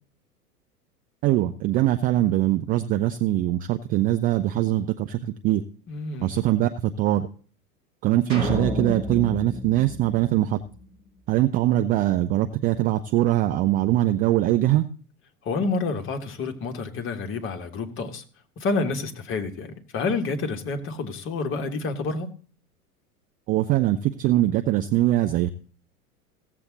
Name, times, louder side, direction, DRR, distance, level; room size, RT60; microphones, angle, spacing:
voice 1, 1.2-5.6 6.2-7.3 8.0-10.6 11.3-14.9 23.5-25.5, right 14 dB, 20° right, 7 dB, 0.4 m, -22 dB
voice 2, 5.9-6.4 15.4-18.2 18.6-22.3, left 3 dB, 25° left, 5 dB, 1.6 m, -29 dB
sound 1, 8.3-10.8, left 1 dB, 60° right, 5.4 m, -31 dB
16.5 x 7.5 x 3.9 m, 0.42 s
figure-of-eight pair, 90°, 45 cm